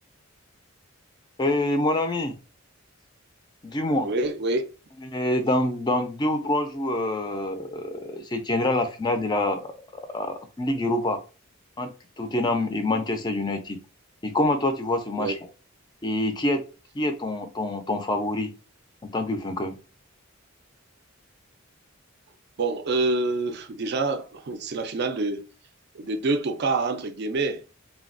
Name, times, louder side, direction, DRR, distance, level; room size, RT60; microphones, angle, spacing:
voice 1, 1.4-2.3 3.6-4.1 5.0-9.7 10.1-11.2 11.8-13.8 14.2-15.3 16.0-16.6 17.0-18.5 19.1-19.7, left 1 dB, 20° left, 0.4 m, -26 dB
voice 2, 3.8-4.6 15.1-15.3 22.6-25.4 25.9-27.6, right 3 dB, 50° right, 0.4 m, -27 dB
3.2 x 2.3 x 2.4 m
head